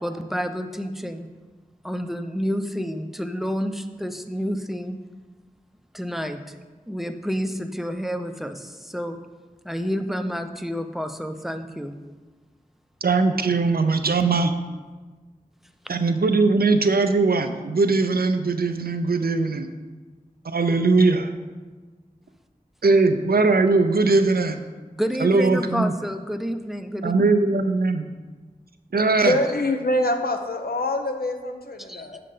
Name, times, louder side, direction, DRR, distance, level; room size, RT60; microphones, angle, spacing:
voice 1, 0.0-1.3 1.8-5.0 5.9-6.5 6.9-9.2 9.6-12.0 25.0-27.1 31.9-32.1, equal, ahead, 7 dB, 0.5 m, -29 dB
voice 2, 13.0-14.5 15.9-19.7 20.4-21.3 22.8-24.6 25.2-25.9 27.0-28.0 28.9-29.4, right 3 dB, 85° right, 7 dB, 0.6 m, -20 dB
voice 3, 29.2-32.2, left 1 dB, 80° left, 4 dB, 0.8 m, -25 dB
7.4 x 6.8 x 3.8 m, 1.3 s
wide cardioid pair, 60°, 15 cm